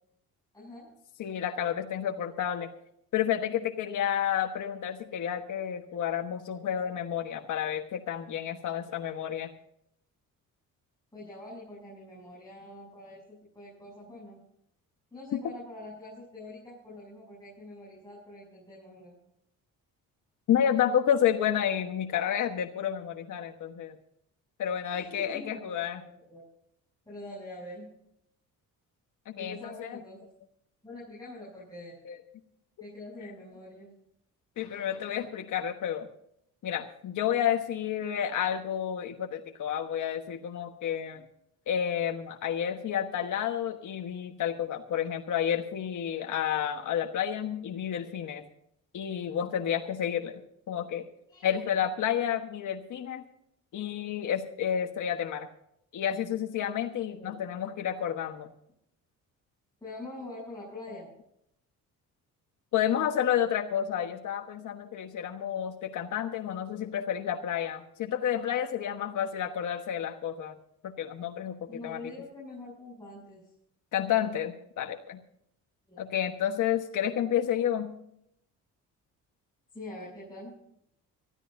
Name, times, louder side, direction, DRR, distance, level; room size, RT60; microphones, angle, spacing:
voice 1, 0.5-0.9 11.1-14.4 15.1-19.2 24.9-26.4 27.1-27.9 29.4-30.3 30.8-32.0 32.8-33.9 51.3-51.6 57.2-57.4 59.8-61.1 71.7-73.5 75.9-76.0 79.7-80.6, left 2 dB, 10° left, -7 dB, 7.5 m, -45 dB
voice 2, 1.2-2.7 3.1-9.5 15.3-15.4 20.5-23.9 24.6-26.0 29.3-30.0 32.1-32.2 34.6-36.1 36.6-41.2 41.7-48.4 48.9-50.4 50.7-51.1 51.4-53.2 53.7-55.5 55.9-58.5 62.7-70.5 70.8-71.6 71.8-72.0 73.9-75.2 76.0-77.9, left 9 dB, 65° left, 3 dB, 1.3 m, -30 dB
25.0 x 14.0 x 2.7 m, 0.74 s
cardioid pair, 100°, 33 cm